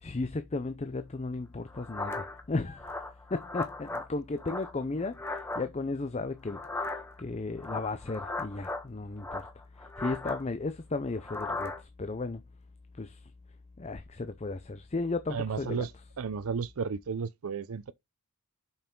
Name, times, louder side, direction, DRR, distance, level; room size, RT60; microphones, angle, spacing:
voice 1, 0.0-2.9 3.3-9.5 9.8-12.4 13.0-13.2 13.8-15.8, left 3 dB, 30° left, 0.5 m, -35 dB
sound 1, 1.7-2.4 2.8-4.1 4.4-5.6 6.5-7.2 7.6-8.8 9.2-10.4 11.2-11.8, left 2 dB, 10° left, 1.2 m, -37 dB
voice 2, 15.3-15.9 16.2-17.9, right 5 dB, 70° right, 0.5 m, -33 dB
6.9 x 5.5 x 3.8 m
head